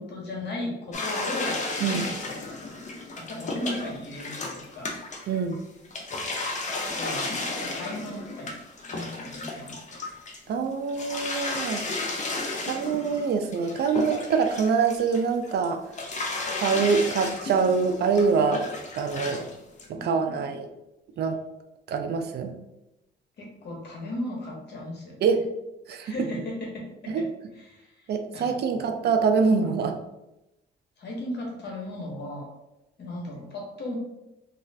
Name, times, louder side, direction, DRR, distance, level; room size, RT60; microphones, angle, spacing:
voice 1, 0.0-1.6 1.9-2.5 3.2-5.0 6.8-8.6 8.9-10.2 19.2-19.5 19.9-20.5 23.4-25.2 26.0-27.3 27.6-29.0 29.6-29.7 31.0-32.5 33.0-34.0, left 1 dB, 60° left, -1 dB, 1.0 m, -36 dB
sound 1, 0.9-5.6 5.8-10.5 10.9-15.7 15.9-19.5 19.8-19.9, left 3 dB, 35° left, 0.6 m, -33 dB
voice 2, 5.3-5.6 10.5-11.8 12.7-15.8 16.6-18.6 19.0-19.4 19.9-20.7 21.2-21.4 21.9-22.5 25.2-25.4 25.9-26.1 27.1-27.3 28.1-30.0, right 5 dB, 55° right, 6 dB, 0.4 m, -24 dB
2.4 x 2.4 x 3.2 m, 0.93 s
cardioid pair, 90°, 20 cm